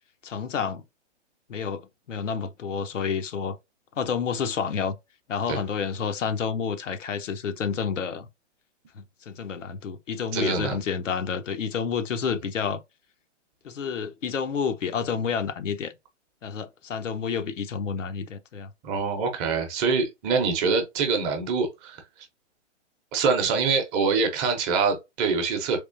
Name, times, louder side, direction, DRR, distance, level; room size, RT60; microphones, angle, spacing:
voice 1, 0.2-0.8 1.5-1.8 2.1-3.6 4.0-5.0 5.3-8.3 8.9-12.8 13.6-15.9 16.4-18.7, left 6 dB, 85° left, 0.8 m, -29 dB
voice 2, 10.3-10.8 18.8-22.0 23.1-25.8, right 5 dB, 20° right, 0.7 m, -25 dB
3.6 x 3.0 x 2.6 m
hypercardioid pair, 145°, 37 cm